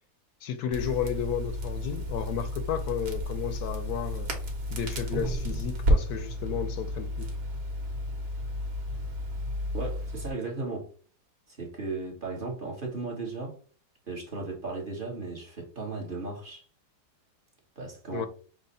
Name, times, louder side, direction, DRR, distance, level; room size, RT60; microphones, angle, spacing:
voice 1, 0.4-4.3 4.7-7.3 18.1-18.3, left 8 dB, 75° left, 1.1 m, -32 dB
Crackle, 0.7-10.3, equal, 65° right, 1.6 m, -31 dB
voice 2, 9.7-10.9 11.5-13.6 14.1-16.6 17.8-18.3, right 3 dB, 35° right, 1.2 m, -36 dB
6.2 x 2.1 x 4.0 m
omnidirectional pair, 1.8 m